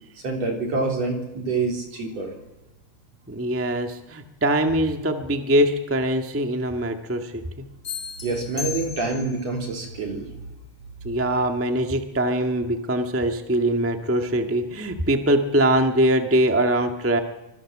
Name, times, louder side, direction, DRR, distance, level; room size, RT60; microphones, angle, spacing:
voice 1, 0.2-2.3 8.2-10.3, right 3 dB, 55° right, 2 dB, 4.7 m, -26 dB
voice 2, 3.3-7.4 11.0-17.2, right 1 dB, 10° right, 5 dB, 0.9 m, -22 dB
sound 1, 7.8-9.5, left 7 dB, 35° left, 3.6 m, -35 dB
25.5 x 22.0 x 7.5 m, 1.0 s
omnidirectional pair, 3.5 m